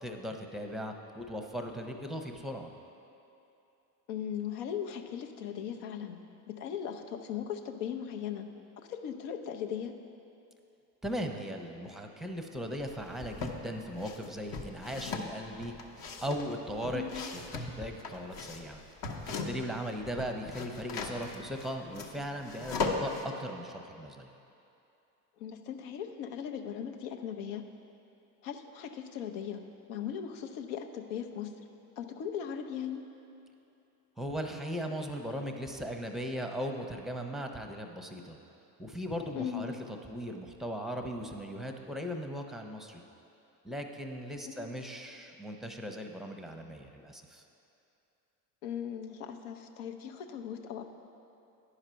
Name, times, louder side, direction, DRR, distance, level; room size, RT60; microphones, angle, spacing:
voice 1, 0.0-2.7 11.0-15.8 16.2-18.8 19.4-24.3 34.2-38.4 38.8-43.0 43.6-47.4, equal, ahead, 4 dB, 0.7 m, -38 dB
voice 2, 4.1-6.2 6.5-8.5 8.8-9.9 16.9-17.3 25.4-27.6 28.4-29.6 29.9-31.6 32.0-33.0 39.3-39.8 44.4-44.7 48.6-50.8, left 8 dB, 75° left, 5 dB, 0.8 m, -38 dB
sound 1, 12.9-13.6 14.0-19.8 20.0-23.2, left 4 dB, 50° left, 1.0 m, -38 dB
10.0 x 4.9 x 5.6 m, 2.8 s
hypercardioid pair, 75°, 47 cm